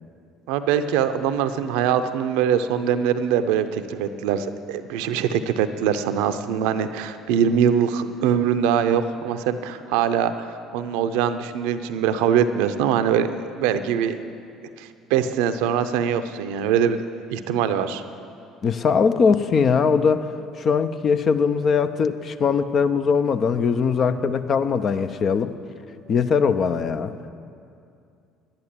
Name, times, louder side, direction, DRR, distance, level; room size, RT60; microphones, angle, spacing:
voice 1, 0.5-14.2 14.8-18.0, right 8 dB, 70° right, 10 dB, 0.6 m, -23 dB
voice 2, 18.6-20.3 20.6-25.5 26.1-27.1, left 5 dB, 45° left, 10 dB, 0.6 m, -21 dB
11.0 x 10.5 x 7.5 m, 2.5 s
hypercardioid pair, 60°, 0 cm